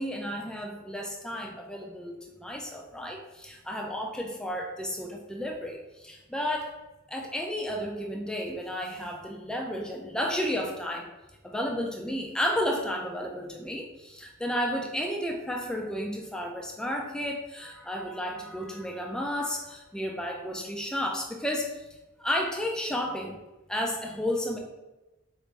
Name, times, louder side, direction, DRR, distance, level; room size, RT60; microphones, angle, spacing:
voice 1, 0.0-6.7 7.1-11.1 11.4-21.8 22.2-23.4 23.7-24.6, equal, 5° left, 1 dB, 0.3 m, -32 dB
4.1 x 2.5 x 3.2 m, 1.1 s
head